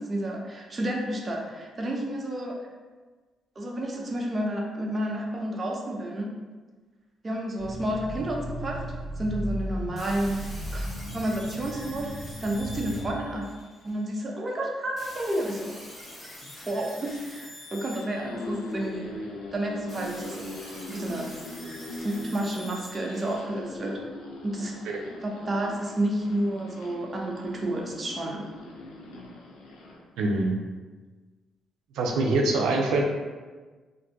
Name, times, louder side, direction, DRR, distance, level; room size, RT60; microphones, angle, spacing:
voice 1, 0.0-2.7 3.6-6.3 7.2-8.9 9.2-10.9 11.1-12.1 12.4-13.5 13.8-15.8 16.6-19.1 19.5-20.5 20.9-21.3 22.0-24.0 24.4-24.8 25.2-28.5, right 1 dB, 30° right, -1 dB, 0.6 m, -30 dB
sound 1, 7.6-13.1, equal, 45° left, 1.1 m, -36 dB
sound 2, 10.0-14.1 15.0-19.0 19.9-23.4, left 1 dB, 25° left, 1.2 m, -45 dB
sound 3, 17.8-30.0, left 1 dB, 90° left, 0.5 m, -41 dB
voice 2, 30.2-30.5 32.0-33.0, right 2 dB, 85° right, 1 dB, 0.5 m, -24 dB
2.6 x 2.2 x 3.9 m, 1.3 s
cardioid pair, 90°, 0 cm